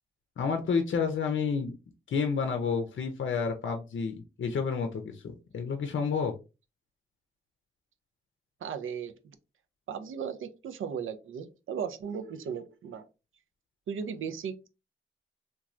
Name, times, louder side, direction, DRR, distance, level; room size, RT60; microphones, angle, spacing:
voice 1, 0.4-1.8 2.1-6.3, left 5 dB, 65° left, 5 dB, 0.5 m, -30 dB
voice 2, 8.6-9.1 9.9-13.1 13.9-14.7, right 7 dB, 75° right, 9 dB, 0.5 m, -36 dB
3.0 x 2.3 x 2.4 m, 0.29 s
supercardioid pair, 40°, 21 cm